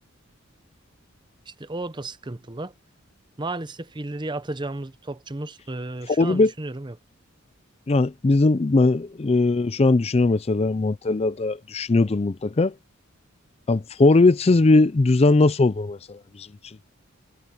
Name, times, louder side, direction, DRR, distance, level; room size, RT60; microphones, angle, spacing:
voice 1, 1.5-2.7 3.4-7.0, right 2 dB, 20° right, 0.7 m, -33 dB
voice 2, 6.1-6.5 7.9-12.7 13.7-16.8, left 3 dB, 30° left, 0.4 m, -20 dB
head